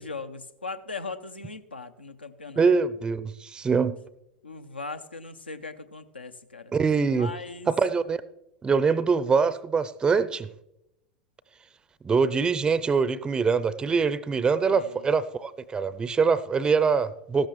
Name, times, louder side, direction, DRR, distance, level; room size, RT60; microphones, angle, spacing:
voice 1, 0.0-2.7 4.4-6.7 7.1-7.7 14.7-15.1, left 4 dB, 80° left, 0.8 m, -39 dB
voice 2, 2.6-4.0 6.7-7.3 7.7-8.2 8.6-10.5 12.0-17.5, right 5 dB, 15° right, 0.5 m, -24 dB
15.5 x 13.0 x 3.1 m
figure-of-eight pair, 90°, 6 cm